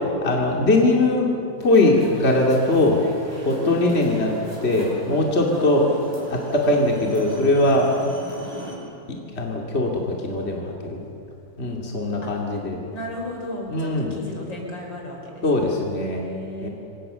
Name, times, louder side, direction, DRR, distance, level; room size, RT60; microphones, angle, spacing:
voice 1, 0.2-1.3 1.6-3.0 3.4-4.3 4.6-5.8 6.3-7.9 9.1-11.0 11.6-12.8 13.7-14.1 15.4-16.3 16.6-16.7, left 2 dB, 30° left, 0 dB, 2.8 m, -21 dB
sound 1, 1.6-8.8, equal, 10° right, 5.5 m, -40 dB
voice 2, 3.5-4.0 5.5-6.2 8.5-8.8 12.9-16.7, left 1 dB, 70° left, 0 dB, 5.9 m, -35 dB
28.5 x 24.0 x 6.8 m, 2.6 s
omnidirectional pair, 2.1 m